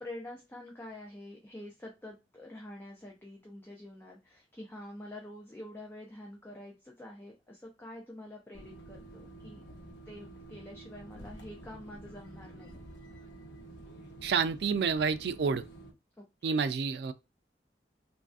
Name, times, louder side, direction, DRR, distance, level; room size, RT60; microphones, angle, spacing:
voice 1, 0.0-9.6 10.1-12.8 16.2-16.6, left 1 dB, 10° left, 0.5 m, -47 dB
sound 1, 8.5-15.9, right 1 dB, 85° left, 0.8 m, -49 dB
voice 2, 14.2-15.6 16.4-17.1, right 5 dB, 65° right, 0.3 m, -29 dB
3.1 x 2.5 x 2.4 m
head